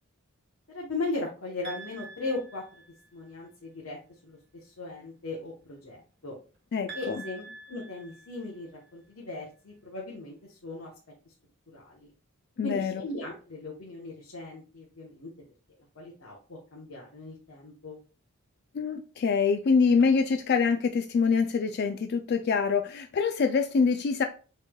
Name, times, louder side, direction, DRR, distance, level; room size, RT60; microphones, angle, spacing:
voice 1, 0.7-2.8 3.1-4.0 4.2-6.3 6.9-10.9 11.7-12.1 12.6-15.3 15.9-18.0, left 2 dB, 65° left, 1.0 m, -38 dB
sound 1, 1.6-3.3 6.9-8.9, right 4 dB, 55° right, 1.2 m, -46 dB
voice 2, 6.7-7.2 12.6-13.0 18.7-24.2, left 5 dB, 50° left, 0.3 m, -25 dB
6.5 x 3.2 x 2.3 m
head